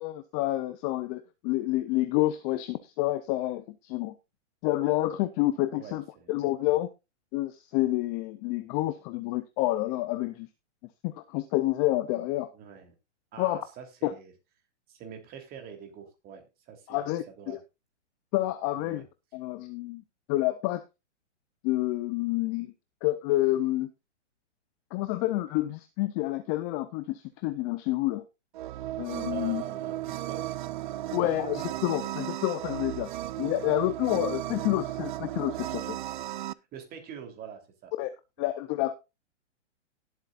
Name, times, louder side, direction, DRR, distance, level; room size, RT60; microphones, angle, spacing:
voice 1, 0.0-4.1 4.6-6.9 7.3-10.5 11.0-12.5 13.4-13.6 14.0-14.1 16.9-17.6 18.3-19.0 19.3-20.0 20.3-20.8 21.6-22.7 23.0-23.9 24.9-28.2 29.0-29.6 31.1-33.1 33.4-36.0 38.0-38.1 38.4-38.9, left 16 dB, 20° left, 0.5 m, -28 dB
voice 2, 5.8-6.3 12.5-12.9 13.3-14.3 14.9-17.6 18.7-19.0 29.3-30.6 31.1-31.2 36.7-37.9 38.4-38.5, right 7 dB, 25° right, 3.2 m, -44 dB
sound 1, 28.5-36.5, right 14 dB, 45° right, 0.5 m, -35 dB
18.5 x 8.0 x 2.4 m
hypercardioid pair, 140°, 36 cm